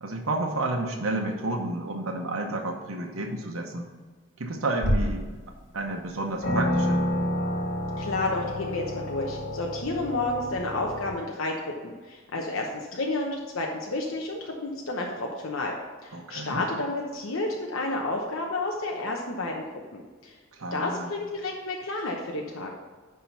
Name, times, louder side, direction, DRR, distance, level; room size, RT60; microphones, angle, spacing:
voice 1, 0.0-3.9 4.4-5.4 5.7-7.1 16.1-16.6 20.5-21.1, right 2 dB, 90° right, 1 dB, 1.0 m, -31 dB
sound 1, 4.8-5.3 5.9-6.0 6.4-11.1, equal, 60° left, 1.7 m, -29 dB
voice 2, 8.0-15.7 16.0-19.6 19.9-20.4 20.7-22.7, left 2 dB, 80° left, 0 dB, 0.9 m, -31 dB
10.0 x 3.7 x 5.8 m, 1.4 s
head